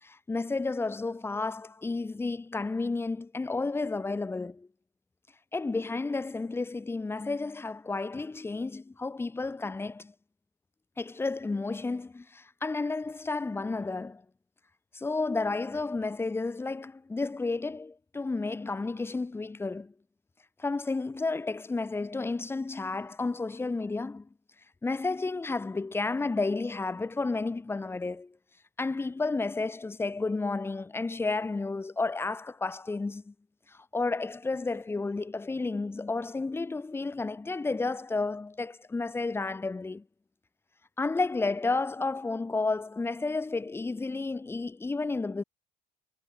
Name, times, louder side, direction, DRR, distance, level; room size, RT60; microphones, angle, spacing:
voice 1, 0.0-4.7 5.5-10.1 11.0-14.2 14.9-19.9 20.6-24.3 24.8-28.4 28.8-33.3 33.7-40.0 41.0-45.4, left 3 dB, 15° left, 3.2 m, -32 dB
cardioid pair, 150°, 17 cm